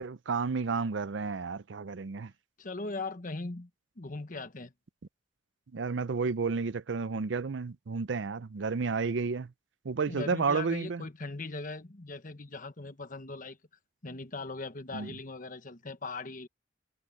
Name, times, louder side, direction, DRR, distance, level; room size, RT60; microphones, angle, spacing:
voice 1, 0.0-2.3 5.7-9.5 9.8-11.0 14.9-15.1, right 4 dB, 80° right, 0.6 m, -31 dB
voice 2, 2.6-3.7 4.0-4.7 10.1-13.6 14.0-16.5, left 3 dB, 45° left, 1.3 m, -39 dB
head